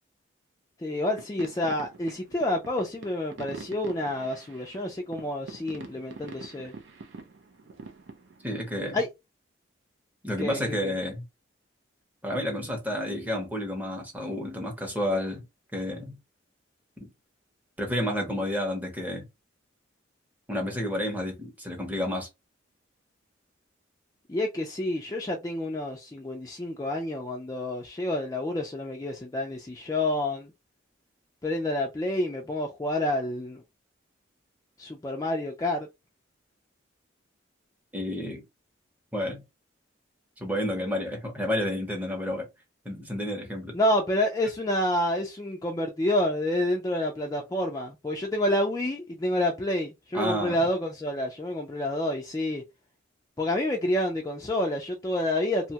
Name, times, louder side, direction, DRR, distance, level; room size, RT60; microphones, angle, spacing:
voice 1, 0.8-6.7 8.9-9.1 10.4-10.9 24.3-30.5 31.4-33.6 34.8-35.9 43.7-52.6 53.4-55.7, left 1 dB, 15° left, 0.3 m, -28 dB
sound 1, 1.2-9.0, right 3 dB, 70° right, 0.5 m, -45 dB
voice 2, 8.4-9.0 10.2-11.2 12.2-15.5 15.7-16.2 17.0-17.1 17.8-19.3 20.5-22.3 37.9-38.4 39.1-39.4 40.4-42.5 42.8-43.8 50.1-50.6, left 1 dB, 10° right, 0.7 m, -30 dB
2.7 x 2.2 x 2.7 m
head